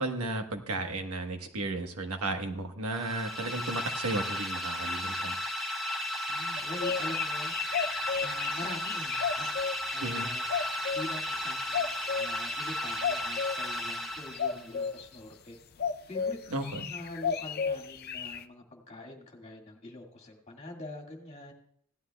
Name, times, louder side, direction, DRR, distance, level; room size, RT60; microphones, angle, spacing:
voice 1, 0.0-5.3 10.0-10.3 16.5-16.9, right 2 dB, 85° right, 5 dB, 1.2 m, -34 dB
sound 1, 2.9-14.8, left 1 dB, ahead, 0.8 m, -34 dB
voice 2, 6.3-7.5 8.2-9.5 9.9-10.4 10.9-15.6 16.1-21.5, left 2 dB, 30° left, 1 dB, 2.0 m, -44 dB
sound 2, 6.6-9.8 10.5-11.2 11.7-12.3 13.0-13.6 14.4-15.0 15.8-16.3 16.6-18.4, left 6 dB, 45° left, 0.5 m, -32 dB
17.0 x 11.5 x 2.3 m, 0.66 s
head